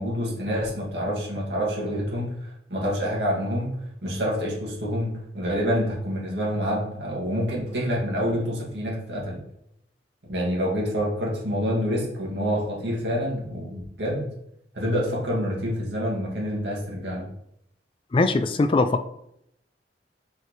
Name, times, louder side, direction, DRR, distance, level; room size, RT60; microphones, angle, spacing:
voice 1, 0.0-9.4 10.2-14.3 14.7-17.3, equal, 70° right, -3 dB, 2.3 m, -27 dB
voice 2, 18.1-19.0, left 3 dB, 30° left, 10 dB, 0.3 m, -21 dB
6.7 x 4.8 x 3.2 m, 0.75 s
head